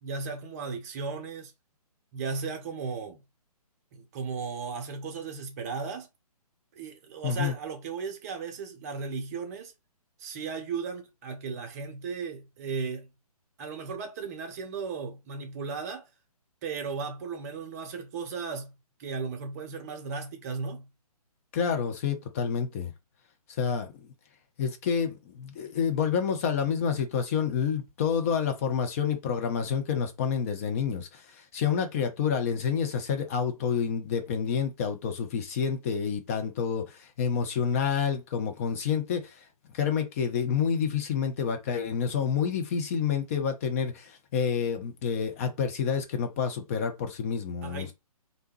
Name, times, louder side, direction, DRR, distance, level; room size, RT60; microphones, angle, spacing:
voice 1, 0.0-1.5 2.1-3.2 3.9-6.1 6.7-9.7 10.2-13.1 13.6-16.1 16.6-18.7 19.0-20.9 47.6-47.9, right 5 dB, 25° right, 0.7 m, -36 dB
voice 2, 7.2-7.5 21.5-22.9 23.5-23.9 24.6-39.4 39.7-47.9, left 7 dB, 25° left, 0.5 m, -28 dB
3.3 x 2.7 x 3.0 m
figure-of-eight pair, 135°, 20 cm